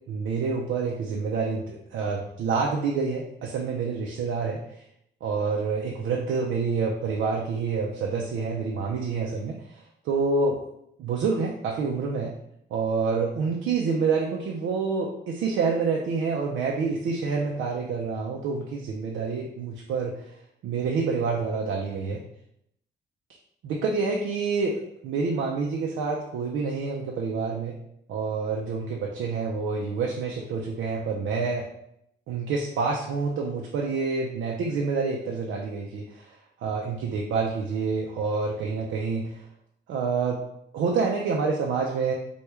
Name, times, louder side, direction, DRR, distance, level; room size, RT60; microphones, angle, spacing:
voice 1, 0.1-4.8 5.2-10.6 11.0-12.3 12.7-20.4 20.6-22.2 23.6-27.8 28.1-31.7 32.3-36.3 36.6-39.5 39.9-40.4 40.7-42.1, right 4 dB, 75° right, -1 dB, 0.5 m, -27 dB
3.0 x 2.3 x 3.4 m, 0.76 s
cardioid pair, 90°, 20 cm